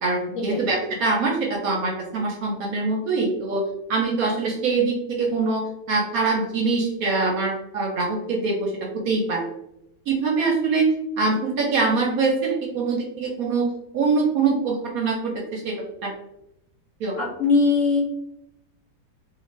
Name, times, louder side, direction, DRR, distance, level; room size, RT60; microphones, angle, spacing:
voice 1, 0.0-3.6 3.9-5.6 5.9-9.4 10.1-10.9 11.2-13.7 13.9-16.1 17.0-17.2, right 4 dB, 70° right, -1 dB, 0.9 m, -24 dB
voice 2, 17.2-18.0, left 4 dB, 60° left, -3 dB, 0.8 m, -21 dB
2.4 x 2.4 x 3.0 m, 0.84 s
omnidirectional pair, 1.8 m